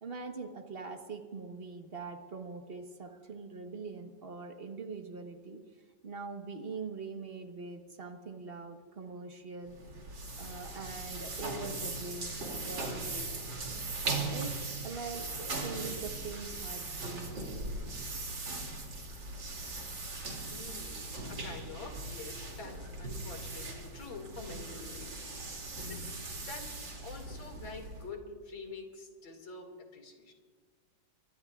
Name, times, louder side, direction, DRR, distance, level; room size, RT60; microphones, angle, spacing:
voice 1, 0.0-5.6 6.0-9.8 10.4-13.3 14.2-14.5 14.8-17.3, right 4 dB, 35° right, 5 dB, 1.2 m, -43 dB
sound 1, 9.7-28.1, right 2 dB, 80° right, 3.4 m, -39 dB
voice 2, 20.4-25.2 25.6-26.1 26.5-30.3, left 3 dB, 80° left, 3 dB, 3.1 m, -47 dB
24.5 x 22.0 x 2.4 m, 1.5 s
omnidirectional pair, 2.0 m